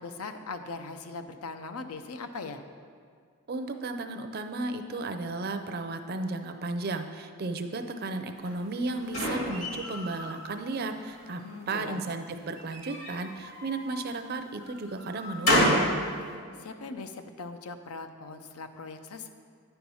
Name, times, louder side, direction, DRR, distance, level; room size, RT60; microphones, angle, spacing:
voice 1, 0.0-2.6 11.4-12.0 16.6-19.3, left 3 dB, 80° left, 8 dB, 0.6 m, -40 dB
voice 2, 3.5-11.4 11.7-15.9, right 3 dB, 45° right, 7 dB, 0.5 m, -34 dB
sound 1, 8.4-10.4 10.8-11.6 12.6-14.0 14.6-15.9, equal, 65° left, 2.4 m, -29 dB
10.0 x 4.5 x 5.5 m, 2.1 s
head